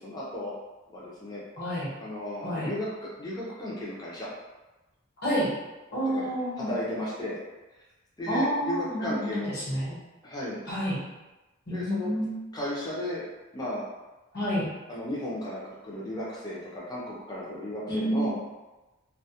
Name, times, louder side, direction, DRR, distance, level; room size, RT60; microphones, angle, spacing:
voice 1, 0.0-0.5 0.9-1.4 1.7-4.3 6.1-6.3 6.6-7.4 8.2-9.5 10.2-10.6 11.7-12.1 12.5-13.2 13.5-13.8 14.9-18.3, left 1 dB, 20° left, -6 dB, 0.4 m, -35 dB
voice 2, 1.6-1.9 2.4-2.7 5.2-5.5 5.9-6.7 8.3-10.0 10.7-11.0 11.7-12.4 14.3-14.7 17.9-18.3, equal, 50° left, -8 dB, 1.0 m, -29 dB
2.2 x 2.0 x 2.7 m, 1.1 s
head